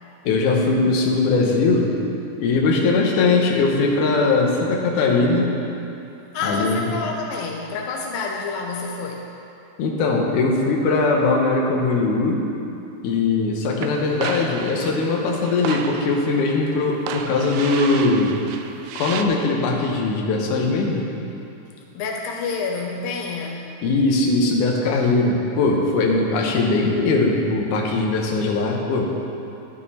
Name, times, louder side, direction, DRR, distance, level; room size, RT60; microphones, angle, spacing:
voice 1, 0.2-1.9 2.4-5.5 6.4-6.8 9.8-12.5 13.0-18.4 19.0-21.1 23.8-29.1, left 3 dB, 70° left, 0 dB, 2.0 m, -20 dB
voice 2, 6.3-9.3 21.9-23.7, left 4 dB, 90° left, 1 dB, 2.0 m, -28 dB
sound 1, 13.8-19.2, right 7 dB, 85° right, 2.2 m, -33 dB
11.5 x 11.0 x 4.2 m, 2.8 s
omnidirectional pair, 5.0 m